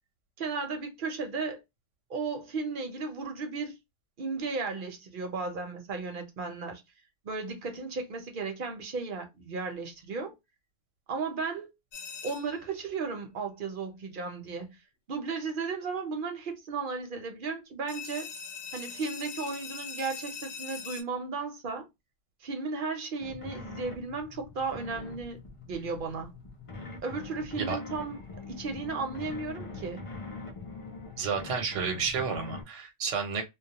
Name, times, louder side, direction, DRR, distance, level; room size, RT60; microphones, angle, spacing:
voice 1, 0.4-1.6 2.1-3.8 4.2-6.8 7.2-10.4 11.1-11.7 12.2-14.8 15.1-18.3 18.7-21.9 22.4-26.3 27.0-28.2 28.5-30.1, right 4 dB, 55° right, 0.7 m, -35 dB
sound 1, 11.9-12.7 17.9-21.0, left 6 dB, 70° left, 0.9 m, -41 dB
sound 2, 23.2-32.6, left 3 dB, 40° left, 0.5 m, -43 dB
voice 2, 31.2-33.5, right 5 dB, 85° right, 1.0 m, -31 dB
2.2 x 2.1 x 2.8 m
omnidirectional pair, 1.2 m